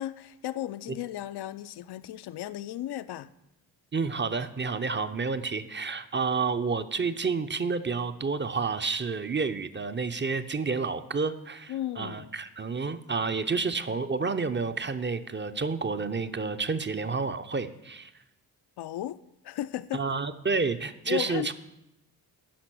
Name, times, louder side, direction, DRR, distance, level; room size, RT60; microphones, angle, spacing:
voice 1, 0.0-3.3 11.7-12.3 18.8-19.2 19.4-20.0 21.1-21.5, left 13 dB, 55° left, 0.6 m, -35 dB
voice 2, 3.9-18.1 19.9-21.5, right 4 dB, 25° right, 0.8 m, -30 dB
10.5 x 5.9 x 6.3 m
hypercardioid pair, 45°, 47 cm